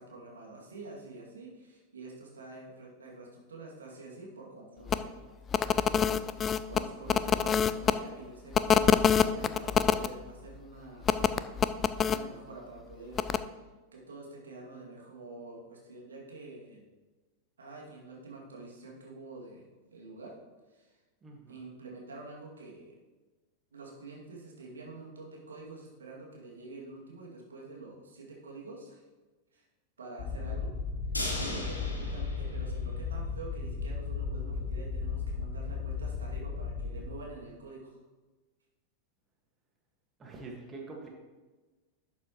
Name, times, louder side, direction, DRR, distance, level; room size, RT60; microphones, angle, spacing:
voice 1, 0.0-5.1 5.5-5.8 6.7-11.1 12.0-13.2 13.5-16.8 17.6-19.6 19.9-20.3 20.7-21.0 21.5-23.0 23.7-29.0 29.5-29.7 30.0-30.7 31.3-38.0, right 3 dB, 70° right, -3 dB, 2.3 m, -47 dB
sound 1, 4.9-5.0 5.5-7.9 8.5-10.1 11.0-12.2 13.2-13.4, left 8 dB, 25° left, 0.4 m, -25 dB
voice 2, 21.2-21.6 40.2-41.1, right 3 dB, 20° right, 0 dB, 1.7 m, -45 dB
sound 2, 30.2-37.1, left 4 dB, 50° left, 2.2 m, -35 dB
sound 3, 31.1-33.3 33.6-33.7 34.1-34.2, left 1 dB, 85° left, 2.1 m, -38 dB
11.5 x 8.7 x 3.1 m, 1.2 s
figure-of-eight pair, 90°, 0 cm